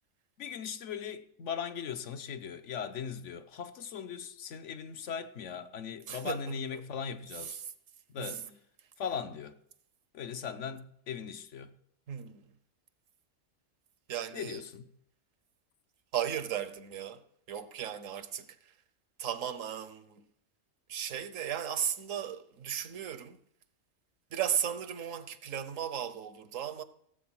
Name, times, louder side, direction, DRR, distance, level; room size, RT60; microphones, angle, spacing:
voice 1, 0.4-7.6 8.1-8.5 9.0-9.6 10.1-11.7 14.3-14.9, left 7 dB, 70° left, 1.1 m, -39 dB
voice 2, 6.1-6.5 7.5-7.6 8.2-8.5 12.1-12.5 14.1-14.6 16.1-17.2 17.5-18.5 19.2-20.2 20.9-23.4 24.3-26.8, right 9 dB, 80° right, 1.3 m, -35 dB
16.0 x 8.1 x 6.0 m
omnidirectional pair, 1.3 m